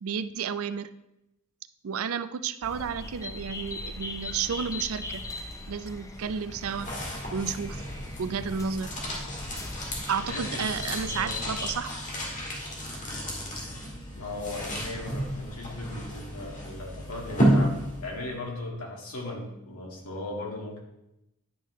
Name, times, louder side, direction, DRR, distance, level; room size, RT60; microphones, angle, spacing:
voice 1, 0.0-0.9 1.8-5.2 5.7-6.9 7.3-7.8 8.2-8.9 10.1-11.9, right 6 dB, 70° right, 13 dB, 0.4 m, -32 dB
sound 1, 2.6-11.8, left 2 dB, 15° left, 0.5 m, -39 dB
sound 2, 6.1-18.3, equal, 35° left, 1.7 m, -32 dB
voice 2, 10.2-11.7 14.2-17.8 18.0-20.8, left 2 dB, 80° left, -1 dB, 1.9 m, -38 dB
10.0 x 5.7 x 3.1 m, 0.88 s
head